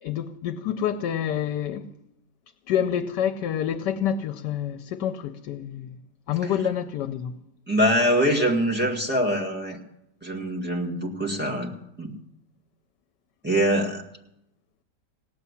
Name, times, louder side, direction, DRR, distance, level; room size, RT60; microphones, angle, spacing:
voice 1, 0.0-1.9 2.7-6.0 6.3-7.3, left 9 dB, 80° left, 1.3 m, -27 dB
voice 2, 7.7-9.8 10.2-11.7 12.0-12.1 13.4-14.0, equal, 5° right, 1.8 m, -24 dB
18.0 x 7.0 x 9.7 m
omnidirectional pair, 1.8 m